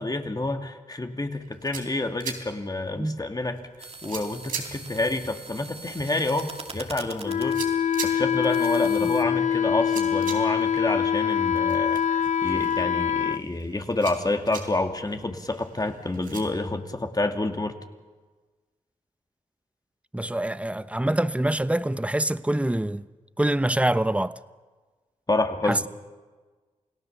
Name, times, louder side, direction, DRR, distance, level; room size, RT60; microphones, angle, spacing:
voice 1, 0.0-3.6 4.0-7.6 8.0-17.7 25.3-25.9, left 2 dB, 30° left, 2.5 m, -28 dB
sound 1, 1.3-16.4, right 6 dB, 90° right, 3.6 m, -43 dB
sound 2, 3.8-9.2, right 3 dB, 45° right, 2.5 m, -43 dB
Wind instrument woodwind instrument, 7.2-13.4, left 8 dB, 60° left, 0.7 m, -24 dB
voice 2, 20.1-23.0 23.4-24.4 25.6-25.9, right 1 dB, 10° right, 0.9 m, -25 dB
29.0 x 18.0 x 7.1 m
cardioid pair, 50°, 14 cm